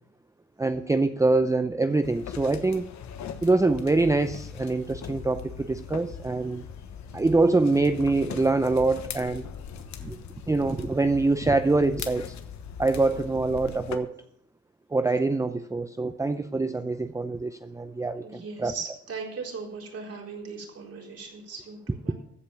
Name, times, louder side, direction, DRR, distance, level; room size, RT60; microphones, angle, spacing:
voice 1, 0.6-2.8 3.4-6.6 7.1-9.5 10.0-10.2 10.5-12.3 12.8-14.1 14.9-18.8, right 3 dB, 10° right, 9 dB, 0.5 m, -24 dB
sound 1, 2.0-14.0, left 7 dB, 65° left, 1.2 m, -40 dB
voice 2, 18.2-22.1, right 5 dB, 55° right, -1 dB, 4.1 m, -38 dB
14.5 x 5.4 x 7.1 m, 0.72 s
cardioid pair, 90°, 30 cm